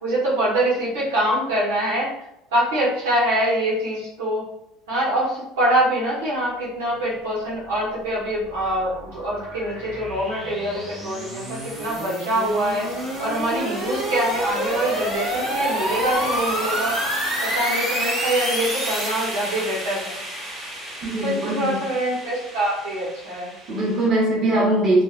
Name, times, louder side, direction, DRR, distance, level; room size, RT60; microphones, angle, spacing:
voice 1, 0.0-2.1 2.5-4.4 4.9-12.9 13.2-16.9 17.4-20.2 21.2-23.5, right 1 dB, 90° right, -6 dB, 0.9 m, -24 dB
sound 1, 8.0-24.1, equal, 15° right, 0.8 m, -29 dB
voice 2, 21.0-21.8 23.7-25.0, right 1 dB, 50° right, -3 dB, 0.9 m, -21 dB
2.6 x 2.2 x 2.5 m, 0.81 s
supercardioid pair, 95°, 0 cm